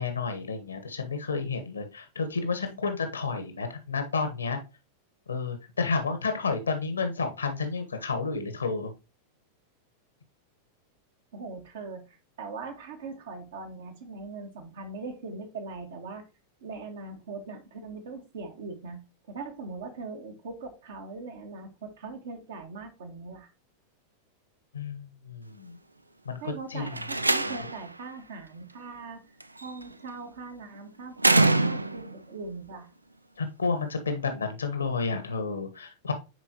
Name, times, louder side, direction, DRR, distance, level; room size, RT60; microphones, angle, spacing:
voice 1, 0.0-4.6 5.3-8.9 24.7-25.8 26.2-26.9 27.4-27.6 33.4-36.1, left 4 dB, 75° left, 7 dB, 1.3 m, -31 dB
voice 2, 11.3-16.2 16.6-19.0 19.3-23.5 26.4-32.9, right 4 dB, 60° right, 5 dB, 1.6 m, -41 dB
Slam, 26.9-27.9 29.4-29.8 31.2-32.2, right 2 dB, 85° right, 0.4 m, -24 dB
9.5 x 4.4 x 2.9 m, 0.28 s
figure-of-eight pair, 90°, 0 cm